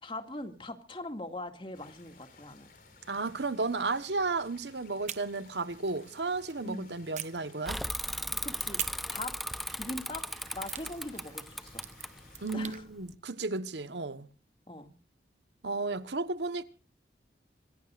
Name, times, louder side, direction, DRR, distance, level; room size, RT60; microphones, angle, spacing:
voice 1, 0.0-2.7 6.6-6.9 8.4-8.8 9.1-9.3 9.8-10.2 10.5-11.8 12.5-12.8 14.7-14.9, left 2 dB, 30° left, 2.3 m, -41 dB
sound 1, 1.7-12.8, left 3 dB, 50° left, 4.5 m, -57 dB
voice 2, 3.1-7.8 12.4-14.3 15.6-16.6, right 3 dB, 85° right, 1.3 m, -33 dB
sound 2, 5.0-6.6 7.1-8.2 8.8-12.8, right 11 dB, 40° right, 0.9 m, -45 dB
Bicycle / Mechanisms, 7.7-13.1, equal, ahead, 0.6 m, -37 dB
26.5 x 17.5 x 2.5 m
head